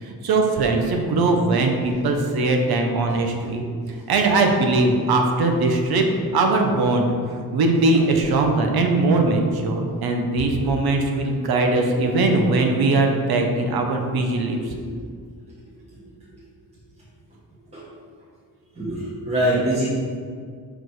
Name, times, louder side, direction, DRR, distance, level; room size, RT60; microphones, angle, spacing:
voice 1, 0.0-3.6 4.1-6.0 6.3-7.1 7.5-14.6, right 2 dB, 80° right, 3 dB, 0.9 m, -20 dB
voice 2, 18.8-19.8, right 1 dB, 15° right, -9 dB, 1.3 m, -23 dB
6.0 x 5.1 x 4.8 m, 2.1 s
wide cardioid pair, 160°, 37 cm